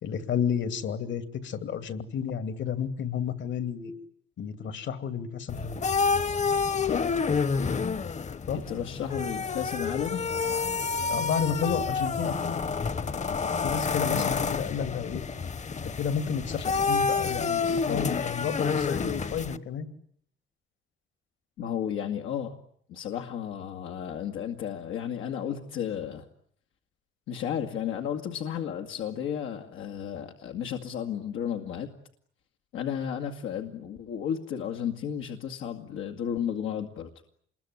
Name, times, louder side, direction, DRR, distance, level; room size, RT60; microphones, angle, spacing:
voice 1, 0.0-3.9 4.4-5.8 8.5-8.6 11.1-12.6 13.6-15.2 15.8-19.9, left 7 dB, 70° left, 10 dB, 2.8 m, -31 dB
sound 1, 5.5-19.6, left 5 dB, 35° left, 1.2 m, -29 dB
voice 2, 8.5-10.2 14.1-14.6 21.6-22.6 22.9-26.3 27.3-31.9 32.7-37.1, left 9 dB, 90° left, 4 dB, 2.2 m, -33 dB
27.0 x 21.5 x 9.8 m, 0.66 s
cardioid pair, 90°, 20 cm